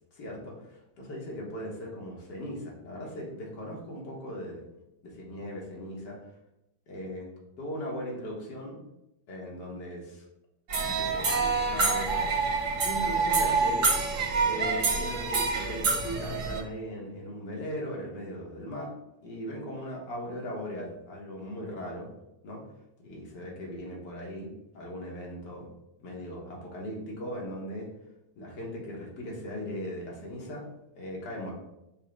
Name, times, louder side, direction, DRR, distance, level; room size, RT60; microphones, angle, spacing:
voice 1, 0.1-4.6 5.0-6.2 6.9-7.3 7.6-8.8 9.3-10.2 10.7-12.4 12.8-13.9 14.4-18.9 19.2-22.1 22.4-22.6 23.0-25.7 26.0-27.9 28.4-30.6 31.0-31.5, equal, 70° left, -2 dB, 1.8 m, -38 dB
sound 1, 10.7-16.6, right 4 dB, 65° right, 1.4 m, -27 dB
5.4 x 2.0 x 4.8 m, 0.89 s
omnidirectional pair, 1.9 m